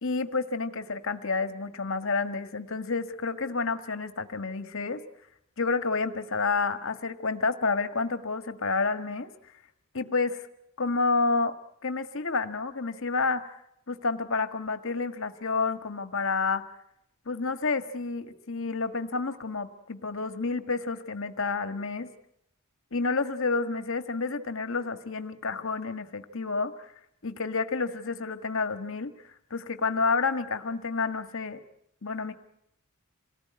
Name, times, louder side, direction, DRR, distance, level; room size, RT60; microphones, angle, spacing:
voice 1, 0.0-5.0 5.6-9.3 9.9-10.5 10.8-11.5 11.8-13.5 13.9-16.6 17.3-22.1 22.9-26.9 27.2-31.6 32.0-32.3, left 4 dB, 65° left, 9 dB, 1.7 m, -29 dB
27.5 x 19.0 x 9.5 m, 0.78 s
head